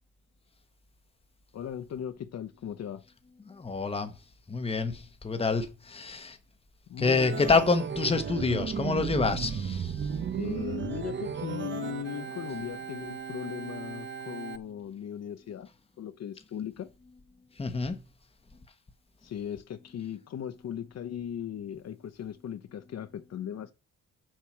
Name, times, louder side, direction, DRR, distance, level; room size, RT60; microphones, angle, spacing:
voice 1, 1.5-3.0 6.9-7.4 10.3-15.7 16.0-16.9 19.2-23.7, left 9 dB, 55° left, 0.9 m, -38 dB
voice 2, 3.4-4.1 4.5-6.4 7.0-10.2 17.5-18.0, left 4 dB, 20° left, 1.2 m, -28 dB
Organ, 7.2-14.6, right 7 dB, 40° right, 0.9 m, -35 dB
7.5 x 6.6 x 7.3 m
wide cardioid pair, 160°, 31 cm